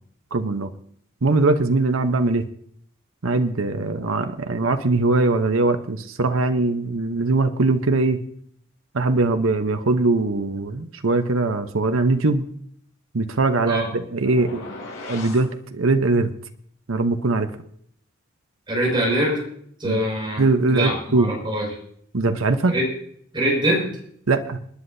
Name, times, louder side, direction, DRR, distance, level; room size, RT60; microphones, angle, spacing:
voice 1, 0.3-0.7 1.2-2.4 3.2-8.2 8.9-12.4 13.1-14.7 15.1-16.3 16.9-17.5 19.8-20.0 20.4-21.3 22.1-22.7 24.3-24.6, right 3 dB, 75° right, 7 dB, 0.9 m, -21 dB
sound 1, 14.2-15.5, left 2 dB, 70° left, 6.1 m, -36 dB
voice 2, 18.7-19.4 19.8-20.4 20.7-21.7 22.7-22.8 23.3-23.9, right 1 dB, 25° right, -2 dB, 5.7 m, -23 dB
28.5 x 9.9 x 2.7 m, 0.64 s
head